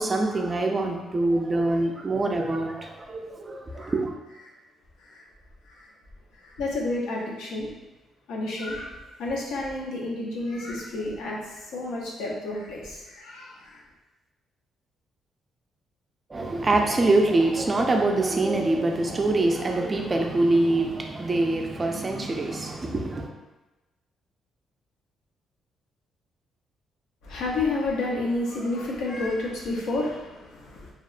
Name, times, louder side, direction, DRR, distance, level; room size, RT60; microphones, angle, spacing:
voice 1, 0.0-4.1 16.3-23.3, right 2 dB, 30° right, 3 dB, 0.3 m, -24 dB
voice 2, 6.4-7.7 8.3-8.9 9.2-13.8 27.2-30.9, left 2 dB, 90° left, -3 dB, 0.5 m, -30 dB
2.8 x 2.0 x 2.4 m, 1.1 s
cardioid pair, 90°, 0 cm